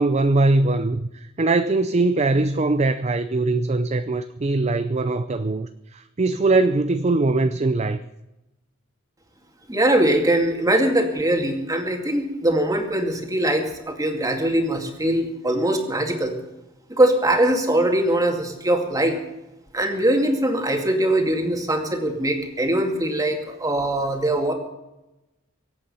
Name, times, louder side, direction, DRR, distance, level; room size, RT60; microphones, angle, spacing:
voice 1, 0.0-8.0, right 2 dB, 35° right, 0.5 m, -21 dB
voice 2, 9.7-16.3 16.9-19.2 19.7-24.5, right 1 dB, 15° right, 2.3 m, -22 dB
23.5 x 8.7 x 5.6 m
head